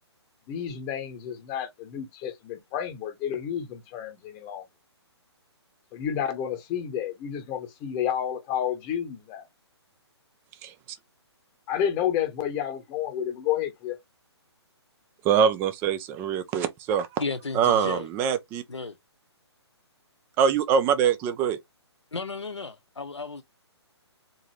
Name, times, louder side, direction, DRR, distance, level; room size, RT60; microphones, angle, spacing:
voice 1, 0.5-4.6 5.9-9.4 11.7-14.0, left 9 dB, 20° left, 0.9 m, -30 dB
voice 2, 15.2-17.2 17.5-18.6 20.4-21.6, right 7 dB, 15° right, 0.4 m, -24 dB
voice 3, 17.2-18.1 18.7-19.0 22.1-23.4, left 4 dB, 80° left, 0.7 m, -33 dB
3.9 x 2.6 x 3.1 m
figure-of-eight pair, 130°, 15 cm